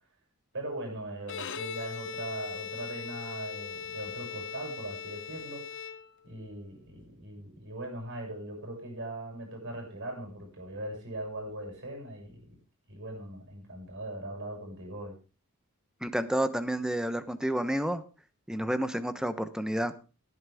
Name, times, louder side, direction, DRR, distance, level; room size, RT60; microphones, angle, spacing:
voice 1, 0.5-5.7 6.2-12.6 12.9-15.1, right 1 dB, 60° right, 2 dB, 7.2 m, -40 dB
Bowed string instrument, 1.2-6.5, left 7 dB, 55° left, 0.9 m, -40 dB
voice 2, 16.0-18.0 18.5-19.9, right 1 dB, 5° right, 11 dB, 0.9 m, -30 dB
18.0 x 10.5 x 3.6 m, 0.34 s
head